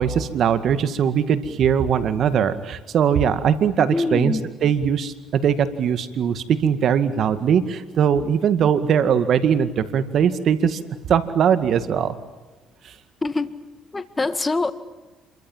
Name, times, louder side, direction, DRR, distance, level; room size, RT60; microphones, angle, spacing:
voice 1, 0.0-10.8 11.1-12.2 12.8-12.9, right 8 dB, 60° right, 11 dB, 2.1 m, -20 dB
voice 2, 3.9-4.4 13.2-13.6 13.9-14.7, left 3 dB, 20° left, 11 dB, 2.0 m, -24 dB
27.5 x 24.0 x 7.4 m, 1.2 s
supercardioid pair, 80°, 0 cm